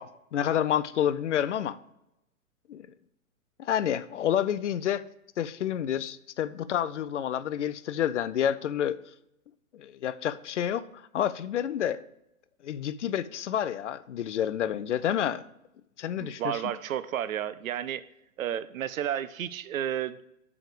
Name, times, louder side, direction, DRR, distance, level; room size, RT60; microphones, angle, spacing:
voice 1, 0.0-1.8 2.7-2.9 3.6-5.0 5.4-9.0 9.7-12.0 12.6-15.4 16.0-16.6, left 10 dB, 55° left, 0.5 m, -29 dB
voice 2, 16.2-18.0 18.4-20.2, right 10 dB, 65° right, 0.5 m, -32 dB
7.1 x 4.8 x 5.0 m
figure-of-eight pair, 115°, 44 cm